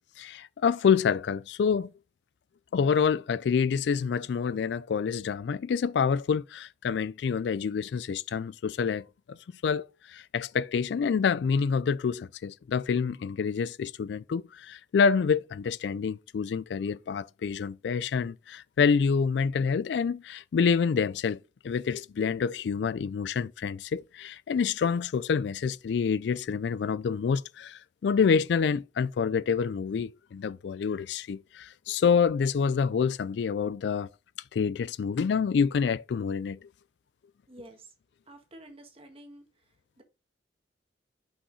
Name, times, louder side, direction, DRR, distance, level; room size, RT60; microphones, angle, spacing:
voice 1, 0.2-1.9 2.7-9.4 9.6-34.1 34.5-36.6, left 6 dB, 70° left, 0.3 m, -27 dB
voice 2, 37.5-37.9 38.3-39.5 40.0-40.1, right 1 dB, 35° right, 1.5 m, -49 dB
5.7 x 5.5 x 3.9 m
head